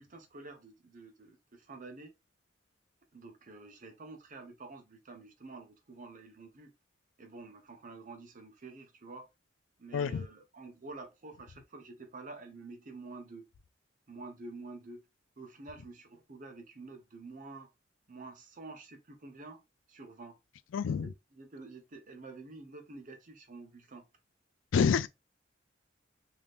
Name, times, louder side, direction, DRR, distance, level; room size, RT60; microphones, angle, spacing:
voice 1, 0.0-2.1 3.1-6.7 7.2-9.3 9.8-13.4 14.1-15.0 15.4-17.7 18.1-19.6 19.9-20.4 21.0-24.0, right 3 dB, 45° right, 0.7 m, -48 dB
voice 2, 9.9-10.3 20.7-21.1 24.7-25.1, left 6 dB, 90° left, 0.3 m, -27 dB
3.5 x 2.7 x 2.4 m
head